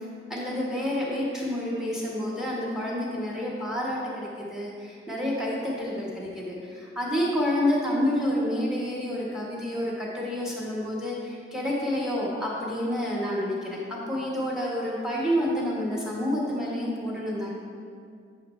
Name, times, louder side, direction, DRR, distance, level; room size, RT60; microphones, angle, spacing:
voice 1, 0.0-17.5, left 1 dB, 5° right, -5 dB, 1.3 m, -29 dB
8.3 x 6.3 x 3.1 m, 2.2 s
head